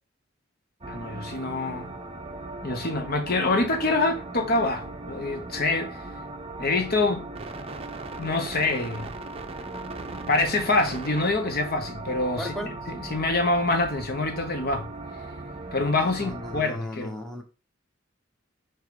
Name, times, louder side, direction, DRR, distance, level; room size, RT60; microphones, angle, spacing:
sound 1, 0.8-16.6, right 2 dB, 30° right, 0.6 m, -38 dB
voice 1, 0.9-1.9 2.6-6.0 6.6-7.3 8.2-9.1 10.3-12.5 12.9-14.9 15.7-17.2, left 2 dB, 50° left, 0.9 m, -25 dB
voice 2, 12.4-12.7 16.2-17.4, left 1 dB, ahead, 1.1 m, -35 dB
6.3 x 3.0 x 5.2 m
head